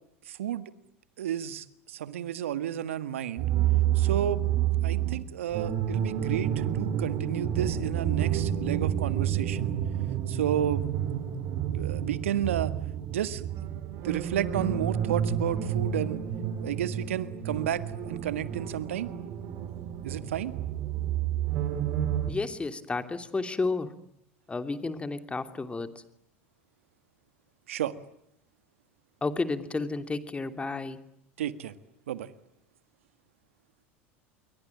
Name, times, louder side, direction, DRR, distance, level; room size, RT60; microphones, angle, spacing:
voice 1, 0.3-0.7 1.2-3.5 4.0-4.4 4.8-9.7 10.3-10.9 11.7-12.7 13.1-13.5 14.0-16.2 16.6-19.1 20.0-20.6 27.7-27.9 31.4-31.7 32.1-32.3, right 10 dB, 80° right, 13 dB, 1.7 m, -32 dB
sound 1, 3.4-22.3, right 10 dB, 50° right, 4.0 m, -29 dB
voice 2, 22.3-23.9 24.5-25.9 29.2-31.0, left 3 dB, 15° left, 9 dB, 2.9 m, -31 dB
28.5 x 23.5 x 8.6 m, 0.75 s
hypercardioid pair, 85°, 7 cm